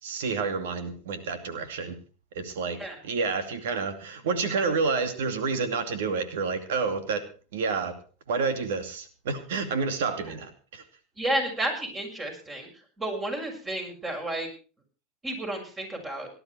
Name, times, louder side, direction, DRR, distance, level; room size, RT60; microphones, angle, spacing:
voice 1, 0.0-2.0 2.3-7.2 7.5-8.0 8.3-10.8, right 4 dB, 80° right, 9 dB, 2.4 m, -29 dB
voice 2, 11.2-12.7 13.0-14.5 15.2-16.3, right 1 dB, 20° right, 3 dB, 6.6 m, -31 dB
18.0 x 12.0 x 4.5 m, 0.37 s
hypercardioid pair, 105°, 0 cm